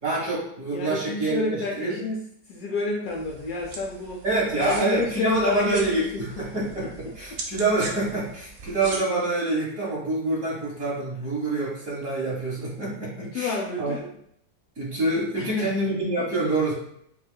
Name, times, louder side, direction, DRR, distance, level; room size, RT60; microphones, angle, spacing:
voice 1, 0.0-2.0 4.2-14.0 14.8-16.7, right 2 dB, 45° right, -7 dB, 2.0 m, -27 dB
voice 2, 0.7-4.2 4.6-6.4 6.8-6.9 13.3-14.1 15.4-15.7, left 3 dB, 70° left, -1 dB, 1.0 m, -29 dB
sound 1, 3.1-9.0, right 3 dB, 90° right, 1.5 m, -40 dB
6.0 x 2.4 x 2.3 m, 0.71 s
omnidirectional pair, 1.9 m